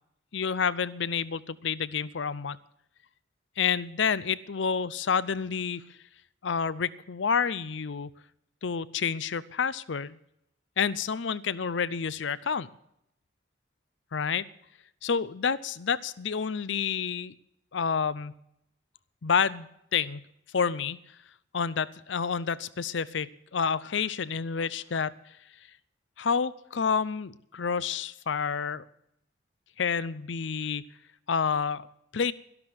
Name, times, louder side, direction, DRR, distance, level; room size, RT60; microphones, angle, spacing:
voice 1, 0.3-2.6 3.6-5.8 6.4-8.1 8.6-10.2 10.8-12.7 14.1-14.5 15.0-17.3 17.7-18.3 19.2-20.2 20.5-21.0 21.5-25.1 26.2-28.8 29.8-30.8 31.3-31.8 32.1-32.3, left 6 dB, 75° left, 19 dB, 0.6 m, -29 dB
12.5 x 12.0 x 7.7 m, 0.77 s
head